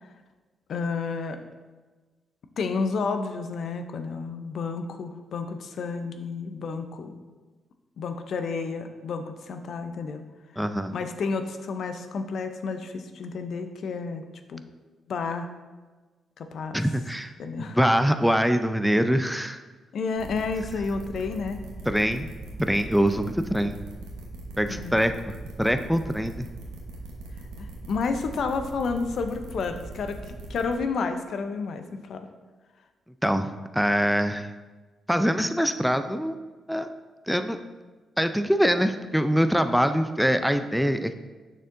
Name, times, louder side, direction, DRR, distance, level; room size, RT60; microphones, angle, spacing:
voice 1, 0.7-1.4 2.6-7.2 8.0-10.2 10.9-14.2 14.5-14.6 15.1-15.5 16.4-16.8 17.4-17.8 19.9-21.6 24.7-25.0 27.6-32.3, left 4 dB, 65° left, 7 dB, 0.6 m, -31 dB
voice 2, 10.6-10.9 16.7-19.6 21.9-22.3 22.6-23.8 24.6-26.5 33.2-34.5 35.1-36.4 36.7-36.9 37.3-37.6 38.2-41.1, equal, ahead, 8 dB, 0.4 m, -24 dB
sound 1, 20.2-30.7, right 3 dB, 90° right, 1.0 m, -41 dB
6.5 x 6.3 x 2.6 m, 1.3 s
supercardioid pair, 55°, 0 cm